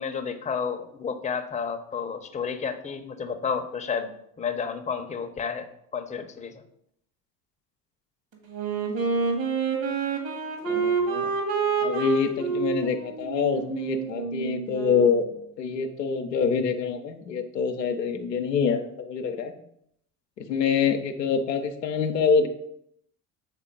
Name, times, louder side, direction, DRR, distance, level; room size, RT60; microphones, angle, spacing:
voice 1, 0.0-4.1 4.4-5.7 5.9-6.6, left 6 dB, 15° left, 7 dB, 0.7 m, -31 dB
Wind instrument woodwind instrument, 8.5-15.2, right 5 dB, 50° right, 1.6 m, -28 dB
voice 2, 10.7-11.3 11.8-15.3 15.6-19.5 20.4-22.5, left 6 dB, 90° left, 5 dB, 0.7 m, -25 dB
7.4 x 3.6 x 3.7 m, 0.73 s
hypercardioid pair, 65°, 48 cm